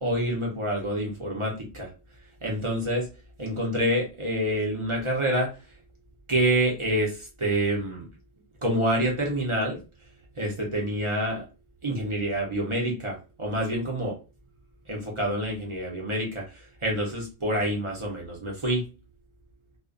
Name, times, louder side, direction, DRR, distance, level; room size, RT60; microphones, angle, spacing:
voice 1, 0.0-1.9 2.4-3.1 3.4-5.5 6.3-8.0 8.6-9.8 10.4-11.4 11.8-14.2 14.9-18.8, right 1 dB, 35° right, -2 dB, 0.6 m, -27 dB
2.4 x 2.1 x 2.4 m, 0.30 s
omnidirectional pair, 1.2 m